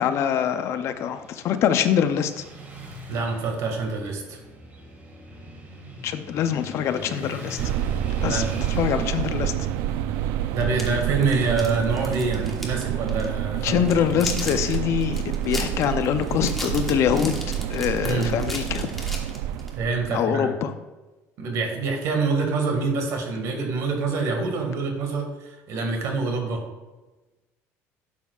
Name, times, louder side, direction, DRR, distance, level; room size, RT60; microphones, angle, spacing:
voice 1, 0.0-2.4 6.0-7.6 8.2-8.4 8.7-9.7 13.6-18.9 20.1-20.7, left 9 dB, 55° left, 10 dB, 0.6 m, -24 dB
Motorcycle / Traffic noise roadway noise, 0.6-14.7, right 1 dB, 30° right, 1.9 m, -43 dB
voice 2, 3.1-4.4 8.3-8.6 10.5-13.8 18.0-18.4 19.7-20.5 21.4-26.6, right 4 dB, 60° right, 3 dB, 1.8 m, -26 dB
sound 1, 7.6-20.2, right 11 dB, 80° right, 0.4 m, -28 dB
sound 2, 10.6-12.8 13.1-13.3 13.7-19.7, left 1 dB, 5° left, 1.3 m, -36 dB
11.5 x 7.2 x 2.4 m, 1.1 s
cardioid pair, 140°, 6 cm